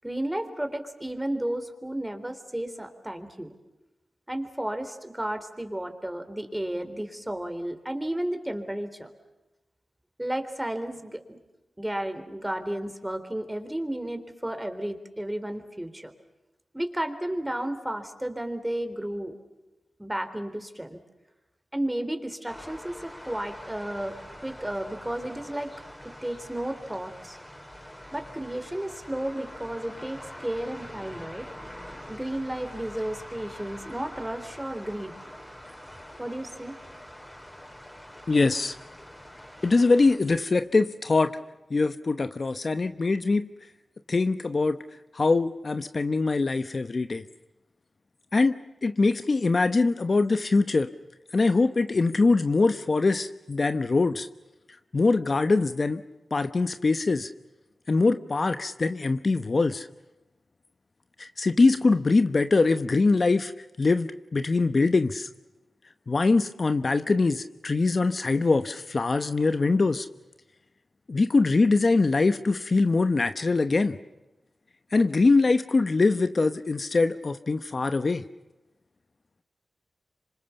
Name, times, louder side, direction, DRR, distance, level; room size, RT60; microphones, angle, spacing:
voice 1, 0.0-3.5 4.3-9.1 10.2-11.4 11.8-16.1 16.7-19.3 20.0-21.0 21.7-25.7 26.0-27.4 28.1-31.5 32.1-35.2 36.2-36.8, right 1 dB, 10° right, 8 dB, 3.6 m, -33 dB
sound 1, 22.5-40.2, equal, 15° left, 4.7 m, -45 dB
voice 2, 38.3-38.7 39.6-41.4 41.7-43.5 44.1-44.8 45.1-47.2 48.3-50.9 51.3-54.3 54.9-56.0 56.3-57.3 57.9-59.9 61.2-63.5 63.8-65.3 66.1-70.1 71.1-74.0 74.9-78.2, left 3 dB, 50° left, 10 dB, 0.9 m, -23 dB
27.0 x 26.0 x 7.1 m, 1.0 s
cardioid pair, 50°, 0 cm